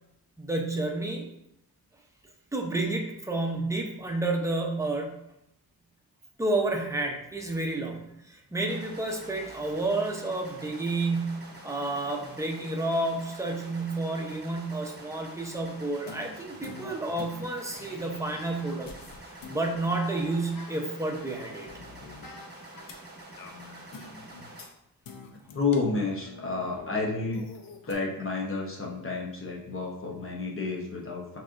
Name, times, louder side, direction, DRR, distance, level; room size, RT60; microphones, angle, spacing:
voice 1, 0.4-1.3 2.5-5.2 6.4-18.9 19.5-21.7, right 2 dB, 10° right, 1 dB, 0.7 m, -30 dB
sound 1, 8.7-24.6, right 2 dB, 25° right, 1.0 m, -47 dB
sound 2, 16.1-23.0 23.4-24.7 25.0-27.9, left 4 dB, 70° left, 0.7 m, -47 dB
voice 2, 25.5-27.5 27.9-31.4, left 4 dB, 35° left, -1 dB, 0.9 m, -30 dB
5.9 x 2.9 x 2.5 m, 0.82 s
wide cardioid pair, 110°, 36 cm